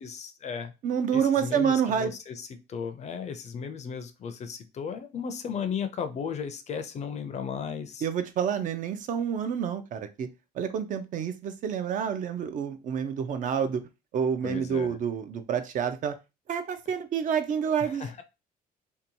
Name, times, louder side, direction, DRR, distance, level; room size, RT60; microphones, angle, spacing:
voice 1, 0.0-0.7 1.1-8.1 14.4-15.0 17.8-18.2, left 6 dB, 40° left, 10 dB, 0.4 m, -35 dB
voice 2, 0.8-2.1 8.0-10.3 10.6-13.8 14.1-16.1 16.5-18.2, right 7 dB, 50° right, 10 dB, 0.4 m, -28 dB
2.8 x 2.2 x 2.7 m, 0.27 s
cardioid pair, 110°, 17 cm